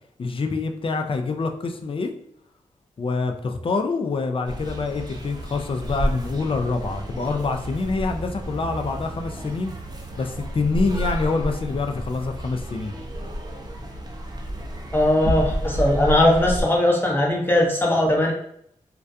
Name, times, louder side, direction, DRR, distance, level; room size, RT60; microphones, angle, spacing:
voice 1, 0.2-2.1 3.0-9.7 10.2-12.9, left 3 dB, 40° left, 5 dB, 0.4 m, -26 dB
sound 1, 4.5-16.6, equal, 30° right, 0.6 m, -31 dB
voice 2, 14.9-18.3, left 1 dB, 15° left, -1 dB, 0.8 m, -19 dB
2.3 x 2.2 x 2.6 m, 0.70 s
cardioid pair, 45°, 14 cm